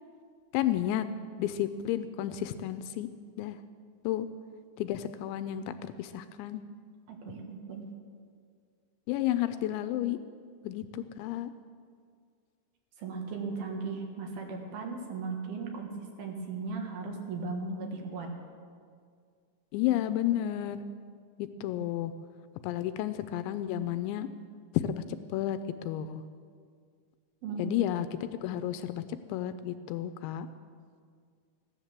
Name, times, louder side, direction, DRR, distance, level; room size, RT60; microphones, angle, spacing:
voice 1, 0.5-1.1 1.4-3.1 3.4-3.6 4.0-4.3 4.8-6.6 9.1-10.2 10.6-11.5 19.7-20.8 21.4-22.1 22.6-24.3 24.7-25.0 25.3-25.6 25.9-26.2 27.6-29.0 29.3-30.5, left 12 dB, 85° left, 11 dB, 2.8 m, -31 dB
voice 2, 7.1-7.9 13.0-15.9 16.2-18.3 27.4-27.7, right 4 dB, 65° right, 2 dB, 3.0 m, -37 dB
15.0 x 10.5 x 7.3 m, 2.1 s
omnidirectional pair, 5.4 m